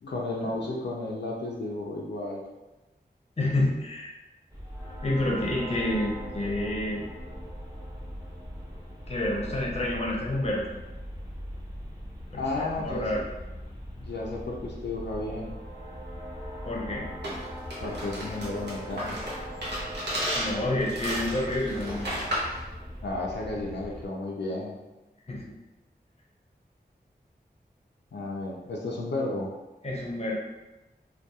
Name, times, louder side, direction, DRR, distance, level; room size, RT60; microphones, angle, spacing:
voice 1, 0.0-2.4 12.3-13.2 14.0-15.6 17.8-19.3 23.0-24.8 28.1-29.5, left 2 dB, 85° left, -3 dB, 0.4 m, -33 dB
voice 2, 3.4-4.1 5.0-7.0 9.1-10.7 12.3-12.4 12.8-13.2 16.6-17.1 20.3-22.1 25.3-25.4 29.8-30.4, left 1 dB, 35° left, -3 dB, 0.6 m, -28 dB
sound 1, 4.5-24.1, equal, 20° right, 0.9 m, -40 dB
sound 2, 17.2-22.6, equal, 80° right, 0.7 m, -33 dB
2.8 x 2.2 x 2.2 m, 1.0 s
wide cardioid pair, 60°, 18 cm